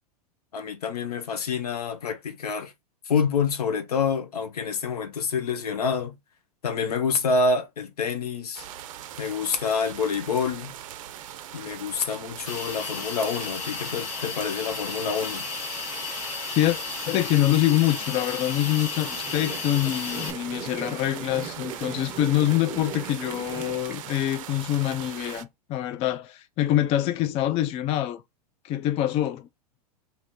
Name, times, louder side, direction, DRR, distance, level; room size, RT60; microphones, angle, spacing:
voice 1, 0.5-2.7 3.0-6.2 6.6-8.7 9.2-10.8 11.5-15.5, left 5 dB, 75° left, 0.8 m, -27 dB
sound 1, 8.5-25.4, right 11 dB, 55° right, 0.5 m, -40 dB
Hiss, 12.5-20.3, left 6 dB, 55° left, 1.3 m, -34 dB
voice 2, 17.1-28.2 28.6-29.5, left 13 dB, 30° left, 0.4 m, -25 dB
sound 2, 18.8-24.0, right 5 dB, 10° right, 1.2 m, -39 dB
3.1 x 2.7 x 4.2 m
figure-of-eight pair, 95°, 20 cm